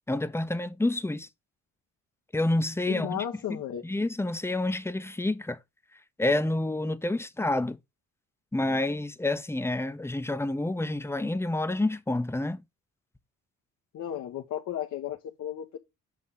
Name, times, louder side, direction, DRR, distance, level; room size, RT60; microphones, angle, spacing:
voice 1, 0.1-1.3 2.3-5.6 6.2-7.8 8.5-12.6, left 2 dB, 10° left, 0.7 m, -28 dB
voice 2, 2.9-3.8 13.9-15.8, left 10 dB, 70° left, 1.2 m, -34 dB
7.5 x 3.7 x 5.6 m
cardioid pair, 90°, 30 cm